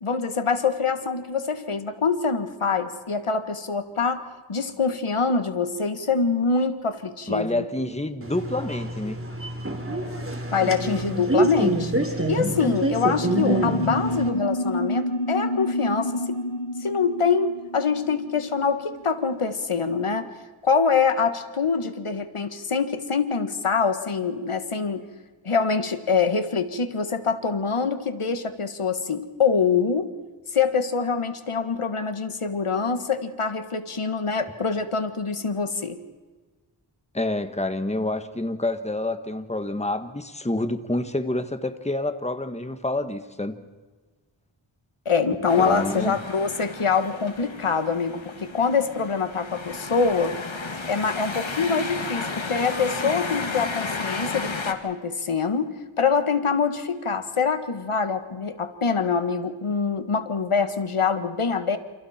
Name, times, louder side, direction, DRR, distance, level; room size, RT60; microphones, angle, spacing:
voice 1, 0.0-4.2 4.5-7.7 10.5-11.9 12.3-16.4 16.8-20.3 20.6-25.0 25.4-30.1 30.5-36.0 45.1-50.3 50.9-55.7 56.0-61.8, left 5 dB, 85° left, 9 dB, 1.7 m, -25 dB
voice 2, 7.3-9.2 37.1-43.5 45.6-46.2, left 2 dB, 15° left, 9 dB, 1.6 m, -28 dB
sound 1, 8.2-14.3, right 1 dB, 25° right, 3.5 m, -26 dB
sound 2, 13.1-19.0, left 1 dB, 50° left, 1.5 m, -29 dB
sound 3, 45.5-54.7, left 4 dB, 65° left, 2.1 m, -33 dB
28.5 x 28.5 x 4.4 m, 1.3 s
wide cardioid pair, 55°, 49 cm